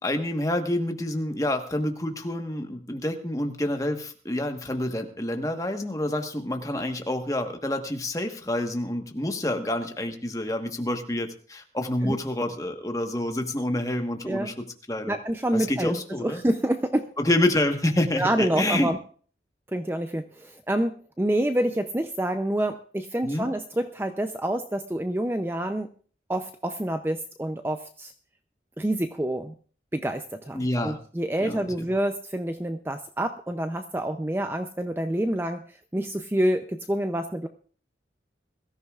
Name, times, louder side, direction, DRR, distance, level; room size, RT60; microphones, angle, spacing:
voice 1, 0.0-15.2 15.5-16.4 17.2-18.9 23.2-23.4 30.5-31.0 31.4-31.8, left 1 dB, 20° left, 5 dB, 1.3 m, -28 dB
voice 2, 15.1-17.1 18.2-19.0 19.7-25.9 26.3-28.1 28.8-29.5 29.9-35.6 35.9-37.5, right 1 dB, 15° right, 7 dB, 0.5 m, -27 dB
22.0 x 13.5 x 2.4 m, 0.43 s
head